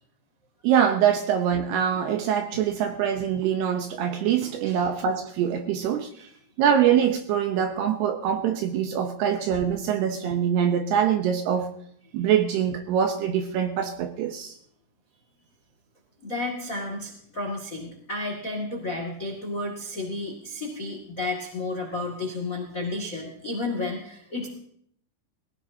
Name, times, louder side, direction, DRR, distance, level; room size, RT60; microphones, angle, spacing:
voice 1, 0.6-6.1 6.6-11.7 12.1-14.5, right 8 dB, 75° right, 5 dB, 2.6 m, -24 dB
voice 2, 16.2-24.5, left 2 dB, 45° left, 1 dB, 1.0 m, -32 dB
21.5 x 17.0 x 2.8 m, 0.69 s
omnidirectional pair, 5.4 m